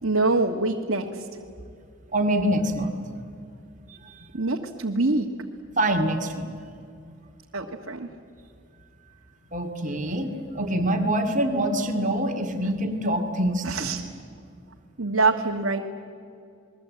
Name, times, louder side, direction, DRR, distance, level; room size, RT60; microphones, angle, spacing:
voice 1, 0.0-1.2 4.3-5.3 7.5-8.1 13.6-14.0 15.0-15.8, right 3 dB, 65° right, 0 dB, 1.6 m, -24 dB
voice 2, 2.1-2.9 3.9-4.2 5.8-6.5 9.5-10.3 10.5-13.9, right 1 dB, 35° right, 5 dB, 2.3 m, -25 dB
28.5 x 21.5 x 8.6 m, 2.5 s
head